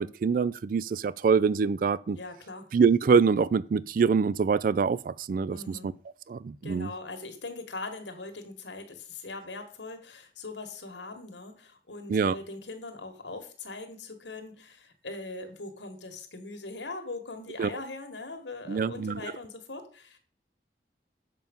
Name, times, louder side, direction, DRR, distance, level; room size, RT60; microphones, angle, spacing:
voice 1, 0.0-2.2 2.7-5.9 6.3-6.9 12.1-12.3 17.6-17.7 18.7-19.3, right 5 dB, 50° right, 0.3 m, -25 dB
voice 2, 2.1-2.7 5.5-5.9 6.6-20.2, left 3 dB, 85° left, 1.7 m, -41 dB
7.5 x 5.9 x 5.3 m
head